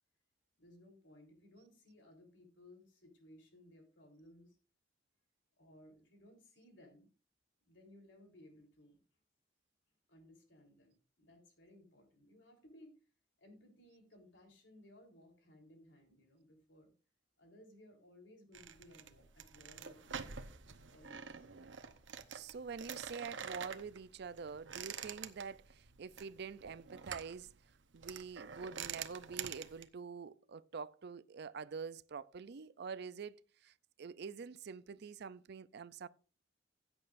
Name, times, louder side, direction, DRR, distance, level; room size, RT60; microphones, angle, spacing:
voice 1, 0.6-4.6 5.6-7.1 7.6-9.0 10.1-12.9 13.4-16.9 17.4-20.5 20.9-21.5, left 1 dB, 75° left, 3.7 m, -61 dB
sound 1, 18.5-29.8, right 7 dB, 85° right, 0.9 m, -47 dB
voice 2, 22.3-27.5 27.9-33.7 34.0-36.1, right 5 dB, 60° right, 0.5 m, -46 dB
16.0 x 8.8 x 2.6 m
head